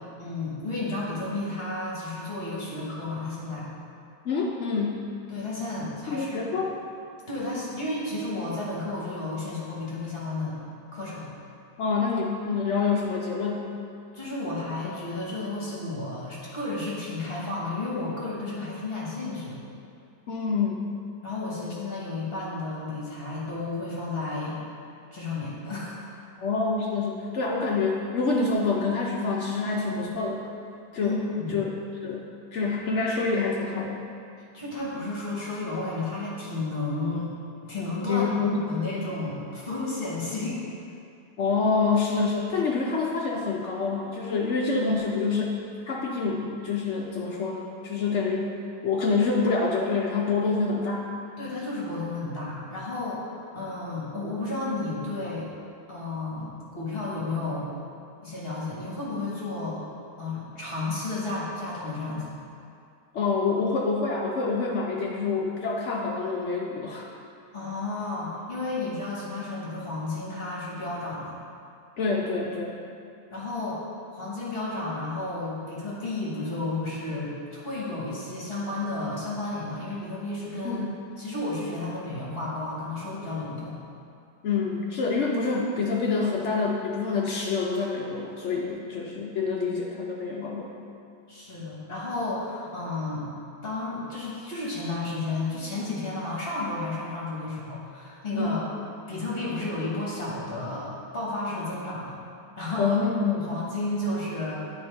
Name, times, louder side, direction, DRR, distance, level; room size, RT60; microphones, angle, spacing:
voice 1, 0.2-3.7 5.3-6.4 7.3-10.6 10.9-11.3 14.1-19.6 21.2-24.6 25.1-26.1 31.0-31.6 34.5-37.3 37.6-40.6 51.4-55.5 55.9-57.7 58.2-59.8 60.2-62.3 67.5-71.3 73.3-73.8 74.1-80.9 81.2-83.8 91.3-93.3 93.6-98.7 99.1-102.1 102.6-103.0 103.3-104.5, left 2 dB, 35° left, -6 dB, 1.3 m, -32 dB
voice 2, 4.2-5.1 6.1-6.7 11.8-13.7 20.3-20.9 26.4-30.5 30.9-31.2 31.5-31.7 32.0-32.3 32.5-34.0 38.1-38.6 41.4-45.6 45.9-48.5 48.8-51.1 63.1-67.1 72.0-72.8 80.6-80.8 84.4-90.7 98.3-98.6 102.8-103.4, left 4 dB, 75° left, -2 dB, 0.6 m, -27 dB
9.5 x 4.6 x 3.3 m, 2.5 s
omnidirectional pair, 1.9 m